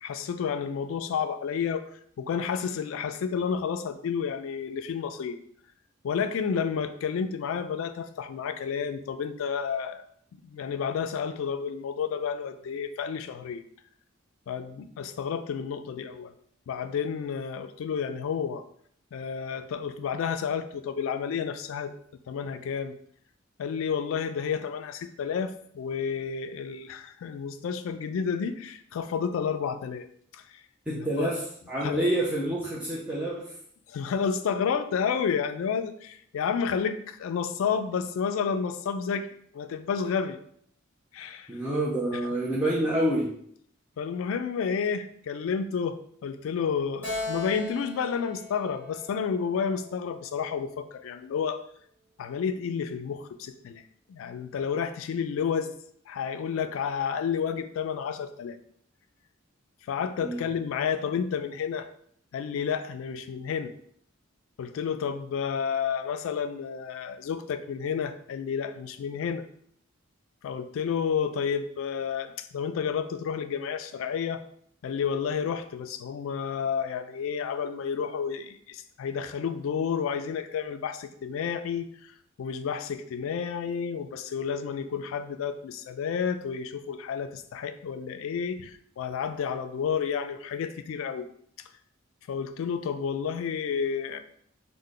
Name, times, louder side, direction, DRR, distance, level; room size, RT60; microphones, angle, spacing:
voice 1, 0.0-1.9 2.2-5.4 6.0-10.0 10.3-13.6 14.5-16.3 16.7-18.6 19.1-21.9 22.3-22.9 23.6-30.1 30.3-30.4 30.9-31.3 31.8-32.1 33.9-39.3 39.5-40.4 41.1-41.5 44.0-51.6 52.2-53.8 54.1-55.7 56.1-58.6 59.9-61.9 62.3-63.7 64.6-69.4 70.4-74.4 74.8-82.1 82.4-91.3 92.3-94.2, left 6 dB, 75° left, 11 dB, 0.3 m, -30 dB
voice 2, 30.9-33.5 41.5-43.3 60.2-60.5, right 1 dB, 5° right, -8 dB, 0.5 m, -28 dB
Keyboard (musical), 47.0-50.5, left 2 dB, 10° left, 1.2 m, -38 dB
3.2 x 2.1 x 3.7 m, 0.64 s
head